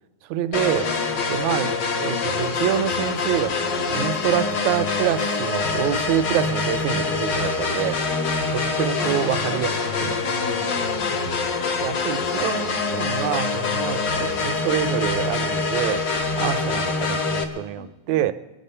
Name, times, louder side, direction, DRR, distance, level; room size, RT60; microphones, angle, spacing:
voice 1, 0.3-0.9 1.3-8.0 8.5-10.2 11.8-16.0 16.4-18.3, right 12 dB, 80° right, 11 dB, 1.9 m, -26 dB
sound 1, 0.5-17.4, left 4 dB, 55° left, 1.4 m, -25 dB
voice 2, 7.7-8.5 10.2-11.3 16.2-16.4 17.8-18.3, left 7 dB, 80° left, 10 dB, 2.0 m, -38 dB
23.0 x 9.3 x 5.5 m, 1.1 s
omnidirectional pair, 3.4 m